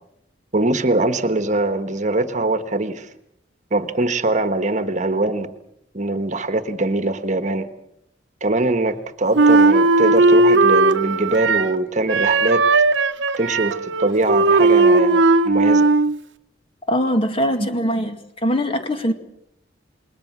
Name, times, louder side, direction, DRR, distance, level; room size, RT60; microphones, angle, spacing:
voice 1, 0.5-3.1 3.7-5.5 5.9-7.7 8.4-12.6 13.4-15.9 17.6-17.7, right 2 dB, 45° right, 9 dB, 1.4 m, -22 dB
Wind instrument woodwind instrument, 9.3-11.8 12.1-16.2, right 3 dB, 90° right, 1.0 m, -16 dB
voice 2, 16.9-19.1, equal, 30° left, 6 dB, 2.1 m, -22 dB
28.5 x 21.0 x 6.2 m, 0.77 s
head